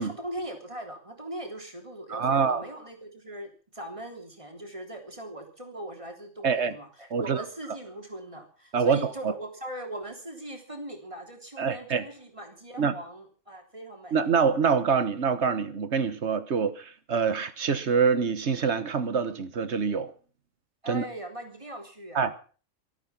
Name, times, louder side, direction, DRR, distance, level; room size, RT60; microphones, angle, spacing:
voice 1, 0.0-14.1 20.8-22.3, right 1 dB, 25° right, 3.6 m, -40 dB
voice 2, 2.1-2.6 6.4-6.7 7.1-7.4 8.7-9.3 11.6-12.0 12.8-12.9 14.1-20.1 20.9-21.0 22.1-22.4, right 6 dB, 60° right, 1.5 m, -25 dB
24.5 x 8.9 x 6.0 m
omnidirectional pair, 1.3 m